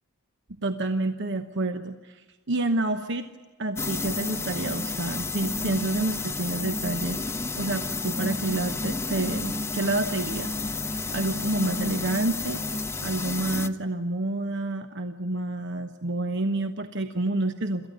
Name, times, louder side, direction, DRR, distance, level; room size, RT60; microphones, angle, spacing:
voice 1, 0.6-3.3 3.6-7.2 7.5-10.8 11.1-17.9, right 2 dB, 60° right, 8 dB, 1.1 m, -29 dB
sound 1, 3.8-13.7, left 3 dB, 15° left, 0.7 m, -31 dB
27.5 x 14.5 x 9.6 m, 1.3 s
head